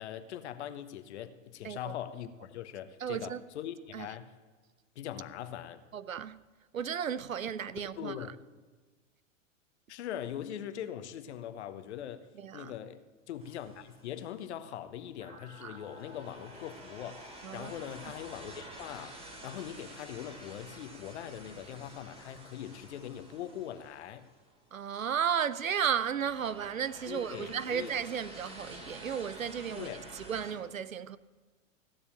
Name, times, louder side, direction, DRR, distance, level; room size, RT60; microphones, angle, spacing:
voice 1, 0.0-4.3 4.9-5.8 8.0-8.3 9.9-12.3 12.5-24.2 27.1-27.9 29.7-30.0, left 10 dB, 60° left, 1.2 m, -41 dB
voice 2, 3.0-3.4 3.9-4.1 5.9-6.4 6.7-8.2 12.4-12.7 15.6-15.8 17.4-17.7 24.7-31.2, right 8 dB, 90° right, 0.7 m, -34 dB
sound 1, 13.4-14.4 15.2-24.7 25.5-30.5, right 1 dB, 15° right, 2.6 m, -50 dB
15.5 x 6.9 x 8.9 m
figure-of-eight pair, 100°, 39 cm